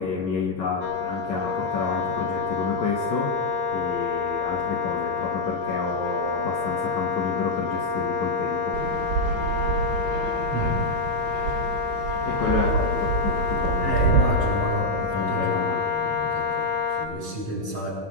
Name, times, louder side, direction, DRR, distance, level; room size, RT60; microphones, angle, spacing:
voice 1, 0.0-3.5 3.7-8.8 12.2-13.9 15.0-15.9, left 5 dB, 90° left, 0 dB, 1.6 m, -30 dB
Wind instrument woodwind instrument, 0.8-17.1, left 6 dB, 70° left, 2.8 m, -28 dB
Fixed-wing aircraft airplane, 8.7-14.2, right 5 dB, 75° right, 2.9 m, -27 dB
voice 2, 10.5-10.9 13.8-15.6 15.9-17.9, equal, 35° right, -3 dB, 5.1 m, -30 dB
28.5 x 19.0 x 2.4 m, 2.4 s
omnidirectional pair, 4.9 m